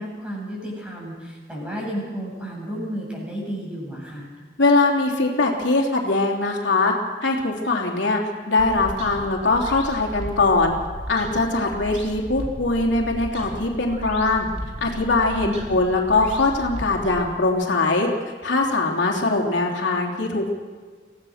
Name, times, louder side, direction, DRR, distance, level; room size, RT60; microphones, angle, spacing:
voice 1, 0.0-4.3 15.4-15.6, equal, 5° right, -3 dB, 8.0 m, -32 dB
voice 2, 4.6-6.9 7.2-8.2 8.5-10.7 11.1-14.5 14.8-18.1 18.4-20.5, left 3 dB, 90° left, 0 dB, 3.2 m, -21 dB
sound 1, 8.6-17.3, equal, 35° right, 3.6 m, -35 dB
26.0 x 16.5 x 6.6 m, 1.5 s
head